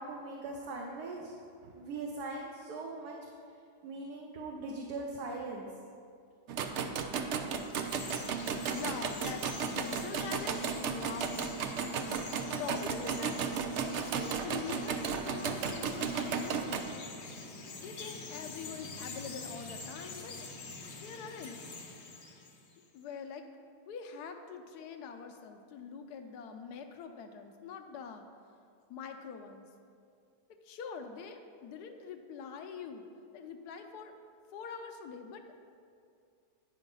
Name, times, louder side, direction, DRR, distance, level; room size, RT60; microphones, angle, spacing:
voice 1, 0.0-1.3 1.6-3.2 3.8-5.7, right 3 dB, 70° right, -1 dB, 1.3 m, -40 dB
sound 1, 6.5-16.8, right 6 dB, 85° right, 0.6 m, -34 dB
Chirp tweet, 7.2-22.8, left 3 dB, 50° left, 0.9 m, -46 dB
voice 2, 8.7-11.4 12.4-13.4 13.8-16.9 17.8-20.3 21.0-21.6 22.9-23.5 23.9-28.3 28.9-29.7 30.6-33.0 33.3-34.1 34.5-35.4, left 6 dB, 75° left, 6 dB, 1.2 m, -44 dB
9.7 x 5.0 x 5.4 m, 2.3 s
omnidirectional pair, 1.8 m